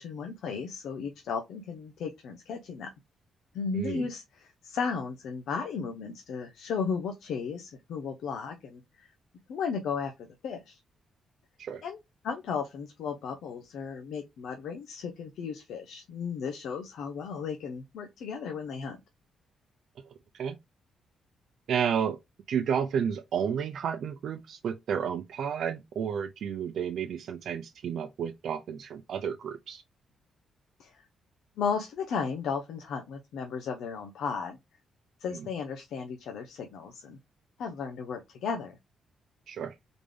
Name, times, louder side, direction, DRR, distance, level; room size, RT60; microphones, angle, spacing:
voice 1, 0.0-2.9 3.5-9.1 9.5-10.8 11.8-12.0 12.2-19.0 30.8-31.0 31.6-34.6 35.2-37.2 37.6-38.7, left 6 dB, 80° left, 0.8 m, -35 dB
voice 2, 3.7-4.0 11.6-11.8 20.3-20.6 21.7-22.2 22.5-29.8 39.5-39.7, right 7 dB, 65° right, 0.5 m, -31 dB
4.0 x 3.6 x 3.3 m
cardioid pair, 110°, 0 cm